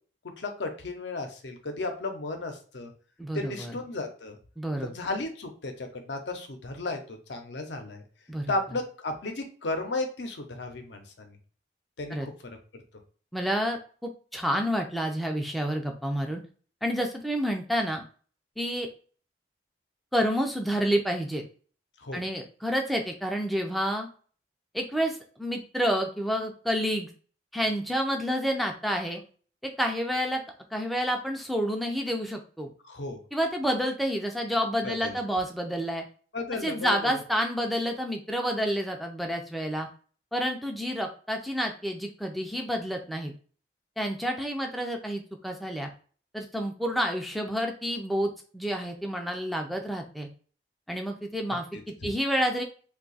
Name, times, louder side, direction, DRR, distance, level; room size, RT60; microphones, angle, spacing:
voice 1, 0.4-2.9 3.3-4.4 4.8-8.0 8.5-11.4 12.0-12.6 22.0-22.2 32.8-33.2 34.8-35.2 36.3-37.2 52.0-52.1, left 2 dB, 75° left, 5 dB, 0.7 m, -34 dB
voice 2, 3.2-3.8 4.6-4.9 8.3-8.5 12.1-12.3 13.3-16.4 16.8-18.0 18.6-18.9 20.1-21.4 22.1-24.1 24.7-27.1 27.5-29.2 29.6-30.4 30.7-32.7 33.3-36.0 36.6-39.9 40.3-43.3 44.0-45.9 46.3-50.3 50.9-52.6, equal, ahead, 2 dB, 0.4 m, -29 dB
2.7 x 2.3 x 3.9 m, 0.41 s
head